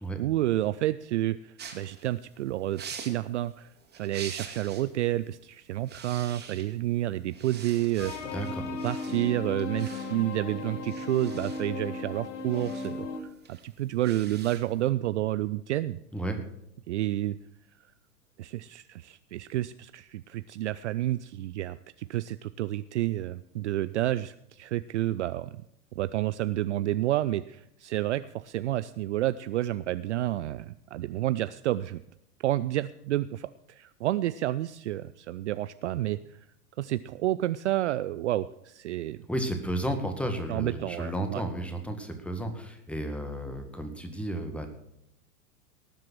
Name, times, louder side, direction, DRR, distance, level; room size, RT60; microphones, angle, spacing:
voice 1, 0.2-8.1 8.8-16.0 16.9-17.4 18.4-25.6 26.0-32.0 32.4-36.4 36.8-39.2 40.5-41.4, right 14 dB, 50° right, 15 dB, 0.5 m, -30 dB
sound 1, 1.6-4.9 5.2-5.4 5.7-6.9 7.3-14.9, right 6 dB, 20° right, 2.6 m, -46 dB
sound 2, 8.0-13.2, left 3 dB, 50° left, 2.0 m, -36 dB
voice 2, 8.3-8.7 16.1-16.4 39.3-44.7, right 1 dB, 5° left, 6 dB, 1.7 m, -33 dB
18.5 x 7.5 x 6.3 m, 0.78 s
figure-of-eight pair, 100°, 45 cm